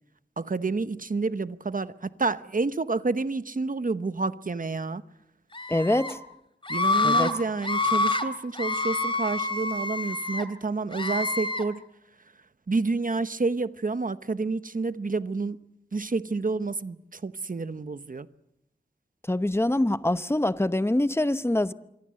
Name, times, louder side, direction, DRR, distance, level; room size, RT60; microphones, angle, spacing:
voice 1, 0.4-5.0 6.7-11.8 12.7-15.6 15.9-18.3, right 3 dB, 50° right, 0.9 m, -29 dB
Screaming, 5.5-6.1 6.6-7.3 7.6-8.2 8.6-10.4 10.9-11.6, left 3 dB, 30° left, 2.6 m, -27 dB
voice 2, 5.7-6.2 7.0-7.3 19.3-21.7, left 1 dB, 15° left, 0.9 m, -24 dB
26.0 x 23.5 x 7.6 m
wide cardioid pair, 70°, 18 cm